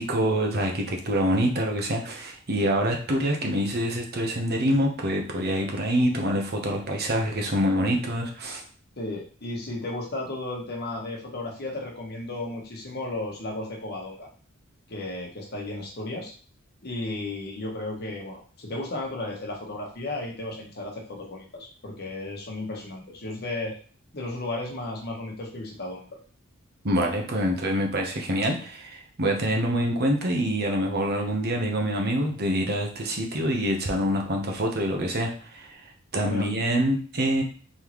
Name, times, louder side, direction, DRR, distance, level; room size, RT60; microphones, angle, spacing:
voice 1, 0.0-8.6 26.8-35.8 36.1-37.4, equal, 50° right, 2 dB, 0.9 m, -26 dB
voice 2, 9.0-14.3 14.9-16.3 16.8-23.8 24.1-26.0 36.2-36.5, left 2 dB, 50° left, -1 dB, 1.2 m, -34 dB
4.2 x 3.5 x 3.1 m, 0.40 s
head